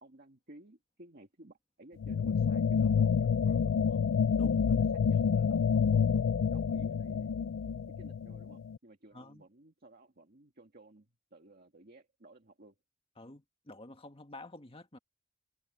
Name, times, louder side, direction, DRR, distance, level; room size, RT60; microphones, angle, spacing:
voice 1, 0.0-4.0 4.8-7.3 8.0-12.8, right 2 dB, 50° right, 1.9 m, -57 dB
sound 1, 2.0-8.8, left 6 dB, 75° left, 0.4 m, -28 dB
voice 2, 13.2-15.0, left 2 dB, 30° left, 1.8 m, -49 dB
head